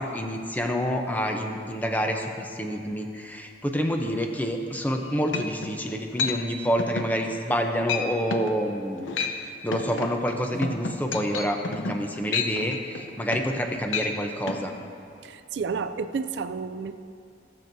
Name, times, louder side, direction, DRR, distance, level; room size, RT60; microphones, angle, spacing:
voice 1, 0.0-9.1 9.4-14.7, equal, 10° left, 3 dB, 0.6 m, -28 dB
sound 1, 4.9-5.0 5.3-5.8 6.2-6.4 6.8-7.1 7.5-7.6 7.9-8.1 8.3-8.5 9.0-9.4 9.7-13.6 13.9-14.1 14.5-14.6, left 5 dB, 90° left, 0.7 m, -30 dB
voice 2, 15.2-17.0, right 5 dB, 65° right, 10 dB, 0.3 m, -31 dB
17.5 x 7.5 x 2.7 m, 2.7 s
head